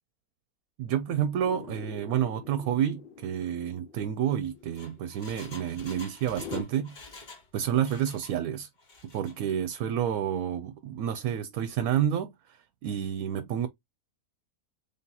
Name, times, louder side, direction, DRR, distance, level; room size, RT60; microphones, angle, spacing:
voice 1, 0.8-7.2 7.5-8.7 9.0-13.7, right 9 dB, 80° right, 1.0 m, -29 dB
sound 1, 1.4-6.6, left 6 dB, 70° left, 0.5 m, -44 dB
Engine, 4.5-7.5 7.7-8.4 8.8-9.3 9.7-9.8, left 3 dB, 35° left, 1.0 m, -48 dB
3.5 x 2.8 x 3.8 m
omnidirectional pair, 1.5 m